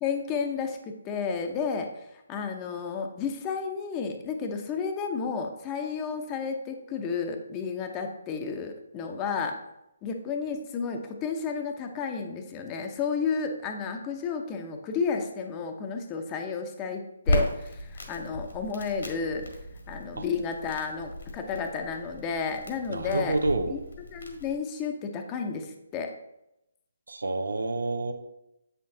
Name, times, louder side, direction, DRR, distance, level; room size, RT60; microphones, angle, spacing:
voice 1, 0.0-9.6 10.0-19.5 19.9-23.4 23.6-23.8 24.1-26.1, left 5 dB, 20° left, 4 dB, 0.8 m, -32 dB
Crackle, 17.3-24.6, left 1 dB, 65° left, 1.6 m, -35 dB
voice 2, 22.9-23.8 27.1-28.1, right 2 dB, 75° right, 7 dB, 0.8 m, -28 dB
7.5 x 6.6 x 2.8 m, 0.87 s
figure-of-eight pair, 145°, 0 cm